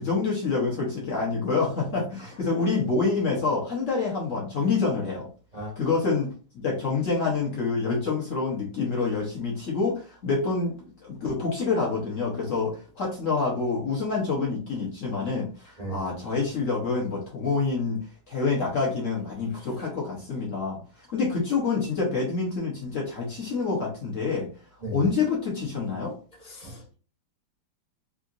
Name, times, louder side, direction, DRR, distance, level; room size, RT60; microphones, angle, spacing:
voice 1, 0.0-5.3 5.8-10.7 11.0-18.0 18.3-20.8 21.1-24.5 24.9-26.1, left 4 dB, 55° left, -3 dB, 1.0 m, -27 dB
voice 2, 26.4-26.9, right 2 dB, 35° right, -5 dB, 0.6 m, -37 dB
3.7 x 2.5 x 2.5 m, 0.38 s
omnidirectional pair, 2.0 m